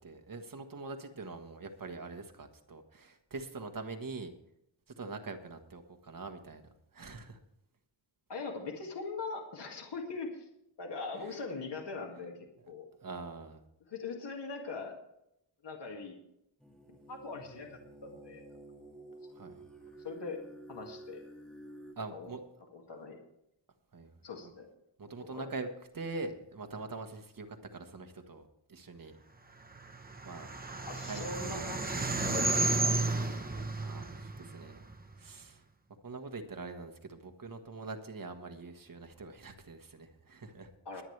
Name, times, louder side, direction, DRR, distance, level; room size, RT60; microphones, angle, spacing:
voice 1, 0.0-4.3 5.0-7.4 11.1-11.4 13.0-13.6 19.3-19.6 22.0-22.4 23.9-24.1 25.0-25.7 25.9-29.2 30.2-30.5 31.1-31.7 32.2-32.4 33.8-34.8 35.2-35.6 36.0-41.0, right 3 dB, 45° right, 6 dB, 1.4 m, -44 dB
voice 2, 8.3-10.5 10.8-12.9 13.9-15.0 15.6-16.2 17.1-18.4 20.0-20.4 20.7-21.2 22.1-22.3 22.7-23.2 24.2-24.7 25.3-25.5 30.9-32.6 33.0-33.6 40.9-41.0, left 4 dB, 60° left, 1 dB, 2.1 m, -41 dB
sound 1, 16.6-21.9, right 1 dB, ahead, 1.9 m, -51 dB
sound 2, 29.8-35.2, right 3 dB, 20° right, 1.0 m, -32 dB
21.5 x 9.3 x 3.3 m, 0.80 s
wide cardioid pair, 150°, 47 cm